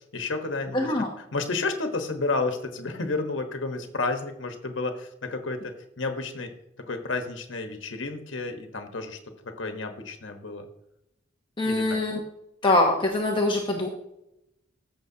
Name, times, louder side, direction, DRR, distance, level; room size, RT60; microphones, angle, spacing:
voice 1, 0.1-6.5 6.9-9.2 9.4-10.6 11.6-12.0, left 3 dB, 80° left, 5 dB, 1.2 m, -31 dB
voice 2, 0.7-1.1 11.6-12.2 12.6-13.9, left 2 dB, 25° left, 1 dB, 0.9 m, -23 dB
14.0 x 6.3 x 2.8 m, 0.83 s
head